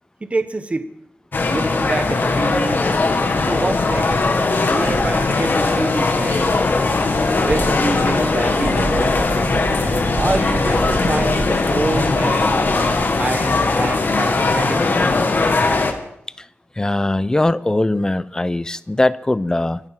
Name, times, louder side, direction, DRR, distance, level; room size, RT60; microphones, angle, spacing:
voice 1, 0.2-0.9 1.5-2.8 3.4-4.2 4.6-6.5 7.4-9.2 10.1-12.6 13.2-15.0, right 2 dB, 30° right, 9 dB, 1.3 m, -26 dB
sound 1, 1.3-15.9, left 3 dB, 50° left, 1.9 m, -19 dB
sound 2, 3.6-13.0, right 3 dB, 70° right, 2.0 m, -31 dB
voice 2, 16.8-19.8, left 2 dB, 15° left, 16 dB, 0.6 m, -20 dB
25.0 x 9.1 x 5.8 m, 0.73 s
wide cardioid pair, 115°, 4 cm